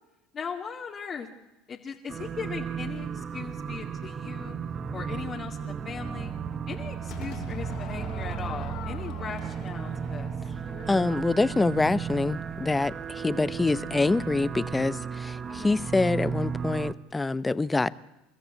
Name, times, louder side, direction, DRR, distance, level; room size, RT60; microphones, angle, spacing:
voice 1, 0.3-1.3 1.7-4.6 4.9-6.4 6.7-10.3 15.5-15.8, left 6 dB, 35° left, 2.3 m, -38 dB
sound 1, 2.1-16.9, right 7 dB, 35° right, 1.2 m, -34 dB
Crowd / Fireworks, 7.1-12.3, left 8 dB, 60° left, 3.2 m, -45 dB
voice 2, 10.9-17.9, left 3 dB, 15° left, 0.9 m, -26 dB
29.0 x 14.0 x 8.5 m
hypercardioid pair, 90°, 0 cm